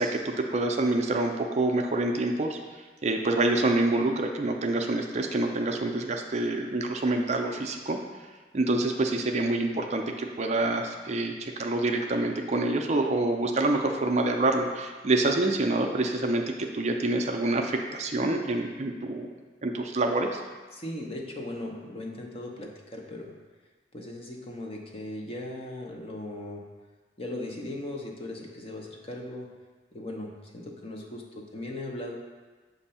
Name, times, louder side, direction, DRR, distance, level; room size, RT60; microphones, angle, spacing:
voice 1, 0.0-2.6 3.0-8.0 8.5-19.3 19.6-20.4, right 2 dB, 40° right, 3 dB, 0.4 m, -27 dB
voice 2, 20.7-23.3 23.9-26.7 27.2-29.5 29.9-32.2, left 1 dB, 35° left, 0 dB, 0.8 m, -38 dB
7.5 x 2.6 x 5.5 m, 1.3 s
head